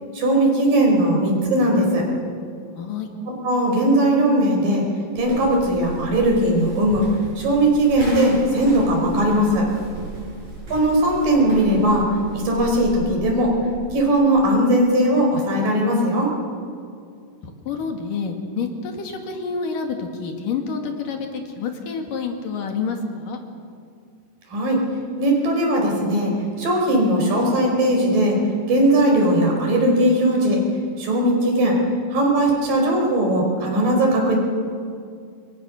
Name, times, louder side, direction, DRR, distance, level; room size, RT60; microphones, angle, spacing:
voice 1, 0.1-2.0 3.4-4.8 5.2-7.0 7.4-9.7 10.7-12.1 12.3-13.5 13.9-16.3 24.5-24.8 25.2-26.3 26.6-28.4 28.7-30.6 31.0-31.8 32.1-34.4, right 1 dB, 85° right, 0 dB, 6.6 m, -19 dB
voice 2, 2.7-3.1 10.1-10.5 17.4-23.4, left 5 dB, 75° left, 3 dB, 3.9 m, -28 dB
sound 1, 5.2-14.1, right 2 dB, 55° right, 9.1 m, -35 dB
27.5 x 23.0 x 6.6 m, 2.3 s
omnidirectional pair, 3.9 m